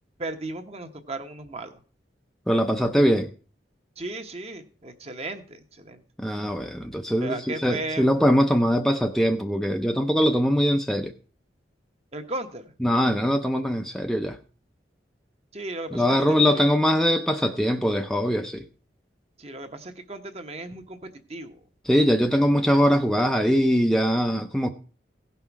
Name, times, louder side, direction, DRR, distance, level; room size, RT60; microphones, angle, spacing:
voice 1, 0.2-1.8 4.0-6.0 7.2-8.1 12.1-12.7 15.5-16.7 19.4-21.6, right 2 dB, 35° right, 1.0 m, -35 dB
voice 2, 2.5-3.3 6.2-11.1 12.8-14.4 15.9-18.6 21.8-24.7, equal, 5° left, 0.5 m, -22 dB
16.5 x 5.7 x 4.6 m
head